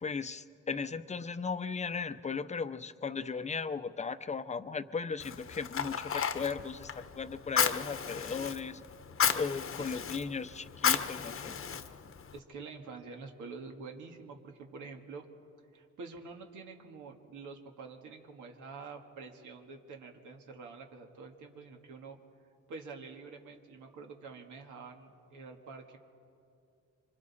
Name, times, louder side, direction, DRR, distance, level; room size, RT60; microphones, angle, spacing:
voice 1, 0.0-8.8 9.4-11.6, left 5 dB, 25° left, 12 dB, 0.7 m, -36 dB
Fire, 5.2-12.4, left 7 dB, 45° left, 1.1 m, -34 dB
voice 2, 12.3-15.2 15.7-22.2 22.7-26.0, right 4 dB, 80° right, 3 dB, 1.9 m, -47 dB
26.5 x 25.0 x 4.2 m, 2.5 s
cardioid pair, 90°, 30 cm